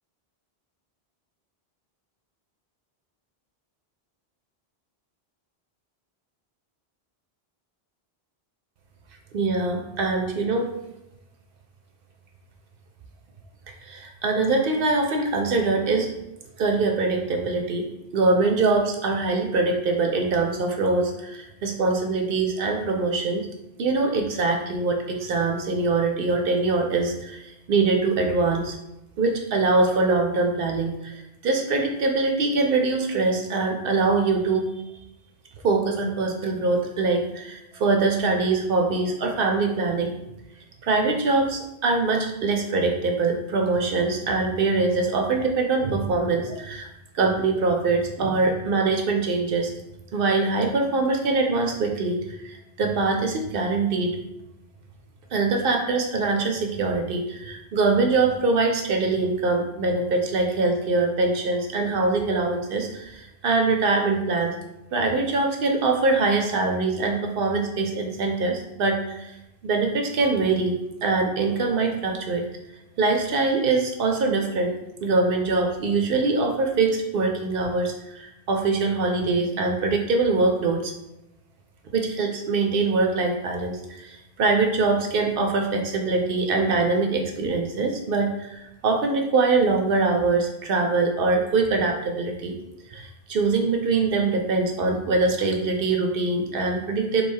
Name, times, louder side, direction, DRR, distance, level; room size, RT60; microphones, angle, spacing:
voice 1, 9.3-10.7 13.8-16.1 16.6-17.8 18.1-23.5 23.8-28.8 29.2-34.7 35.6-40.2 40.8-46.9 47.1-49.7 50.1-54.2 55.3-64.5 64.9-69.3 69.6-72.5 73.0-74.8 75.0-80.9 81.9-92.5 92.9-97.2, right 3 dB, 65° right, 3 dB, 0.7 m, -23 dB
3.2 x 2.7 x 4.4 m, 0.89 s
omnidirectional pair, 1.0 m